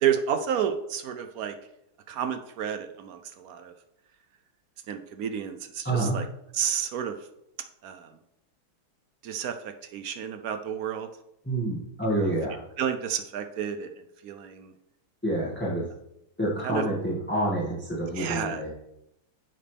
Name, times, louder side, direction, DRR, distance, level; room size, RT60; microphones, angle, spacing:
voice 1, 0.0-1.5 2.1-3.7 4.9-6.2 6.5-7.2 7.8-8.1 9.2-11.1 12.1-12.3 12.8-13.9 14.2-14.7 16.6-16.8 18.2-18.6, right 8 dB, 75° right, 8 dB, 0.8 m, -30 dB
voice 2, 5.8-6.2 11.5-12.6 15.2-15.8 16.4-18.7, right 1 dB, 5° left, -7 dB, 1.8 m, -28 dB
10.0 x 7.4 x 3.4 m, 0.82 s
omnidirectional pair, 2.3 m